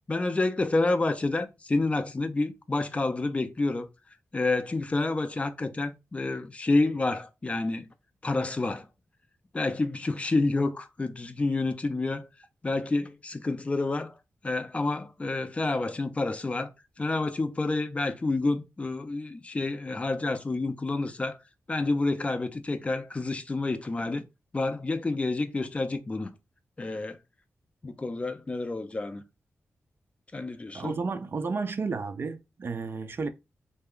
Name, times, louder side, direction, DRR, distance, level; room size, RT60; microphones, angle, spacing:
voice 1, 0.1-3.9 4.3-7.9 8.2-8.9 9.5-12.3 12.6-14.1 14.4-16.7 17.0-21.4 21.7-24.2 24.5-26.3 26.8-27.2 27.8-29.2 30.3-30.9, left 2 dB, 25° left, 0.5 m, -29 dB
voice 2, 30.7-33.3, right 4 dB, 45° right, 0.4 m, -32 dB
3.3 x 2.2 x 3.6 m
wide cardioid pair, 125°, 5 cm